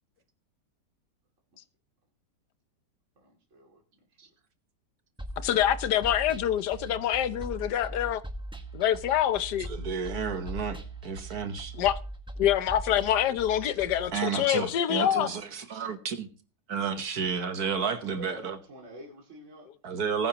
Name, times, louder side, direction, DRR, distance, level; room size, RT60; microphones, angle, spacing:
voice 1, 3.2-3.8 18.0-19.7, right 1 dB, 40° right, 2.8 m, -47 dB
sound 1, 5.2-14.1, right 1 dB, 5° right, 0.9 m, -40 dB
voice 2, 5.4-8.2 8.7-9.7 11.8-12.0 12.4-15.3, left 11 dB, 70° left, 1.3 m, -26 dB
voice 3, 9.7-11.7 14.1-16.3 16.7-18.6 19.8-20.3, right 6 dB, 60° right, 1.5 m, -31 dB
19.5 x 9.9 x 2.9 m
omnidirectional pair, 2.0 m